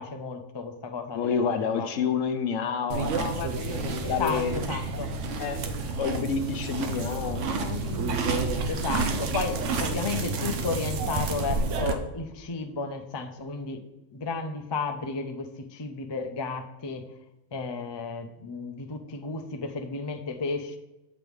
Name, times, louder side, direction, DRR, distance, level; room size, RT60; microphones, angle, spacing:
voice 1, 0.0-1.9 4.0-5.1 8.7-13.8 14.1-17.0 17.5-20.8, left 4 dB, 35° left, 4 dB, 0.4 m, -33 dB
voice 2, 1.1-4.6 5.4-5.6 6.0-8.6, left 6 dB, 75° left, 7 dB, 1.1 m, -30 dB
sound 1, 2.9-11.9, right 3 dB, 70° right, 1.0 m, -29 dB
7.5 x 3.5 x 6.2 m, 0.98 s
omnidirectional pair, 1.3 m